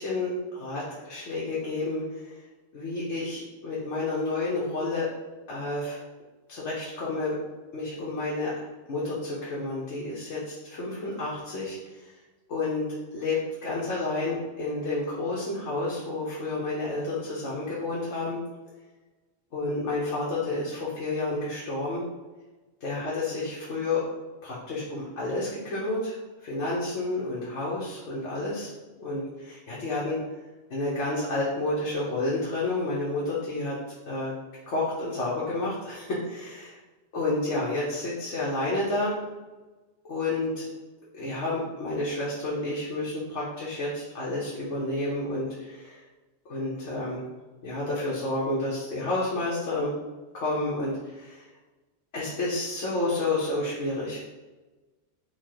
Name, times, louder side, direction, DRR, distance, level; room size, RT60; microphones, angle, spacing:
voice 1, 0.0-2.3 2.7-5.1 5.5-6.0 6.5-7.4 7.7-11.8 12.5-18.4 19.5-22.0 22.8-24.0 24.4-26.2 26.4-28.7 29.0-30.2 30.7-33.8 34.1-34.3 34.7-36.8 37.1-39.1 40.0-40.7 41.1-46.0 46.5-47.2 47.6-49.9 50.3-51.4 52.1-54.2, left 2 dB, 85° left, -7 dB, 1.2 m, -30 dB
4.4 x 2.3 x 4.5 m, 1.2 s
omnidirectional pair, 1.2 m